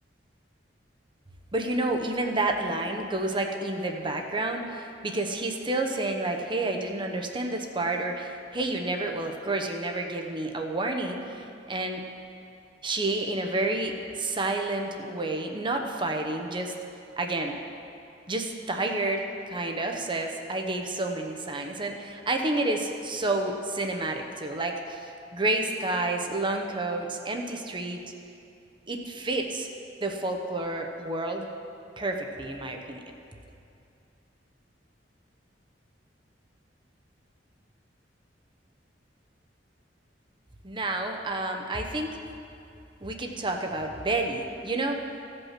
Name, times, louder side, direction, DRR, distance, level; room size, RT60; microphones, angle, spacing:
voice 1, 1.5-12.0 12.8-16.7 17.2-17.6 18.3-28.0 28.9-29.7 30.0-31.5 32.0-33.0 40.6-42.1 43.0-45.0, right 2 dB, 25° right, 3 dB, 0.8 m, -30 dB
15.0 x 5.5 x 5.9 m, 2.6 s
head